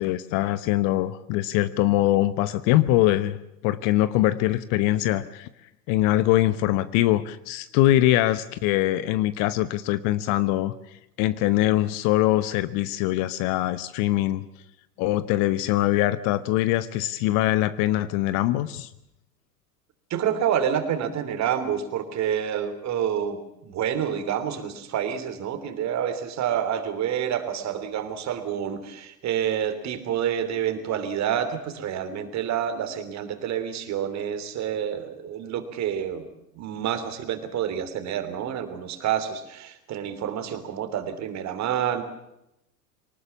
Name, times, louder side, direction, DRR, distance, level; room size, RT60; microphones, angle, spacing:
voice 1, 0.0-3.4 3.6-5.5 5.9-10.7 11.2-14.4 15.0-18.9, left 15 dB, 40° left, 15 dB, 1.0 m, -23 dB
voice 2, 20.1-36.3 36.5-42.0, right 9 dB, 35° right, 10 dB, 3.3 m, -28 dB
24.0 x 19.5 x 7.2 m, 0.85 s
figure-of-eight pair, 90°, 50 cm